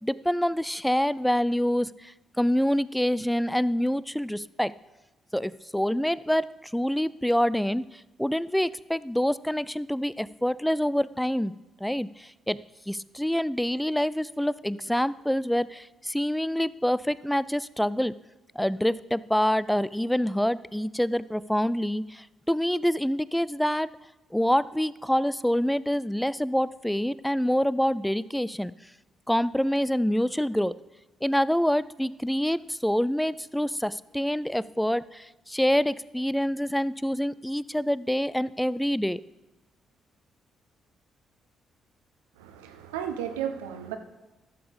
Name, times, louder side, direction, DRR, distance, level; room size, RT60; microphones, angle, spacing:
voice 1, 0.0-4.7 5.3-7.8 8.2-11.5 11.8-12.6 12.9-18.1 18.6-23.9 24.3-28.7 29.3-30.7 31.2-39.2, equal, 5° left, 18 dB, 0.4 m, -26 dB
voice 2, 42.4-44.0, right 9 dB, 90° right, 7 dB, 0.8 m, -34 dB
11.5 x 7.0 x 5.1 m, 1.1 s
hypercardioid pair, 45°, 0 cm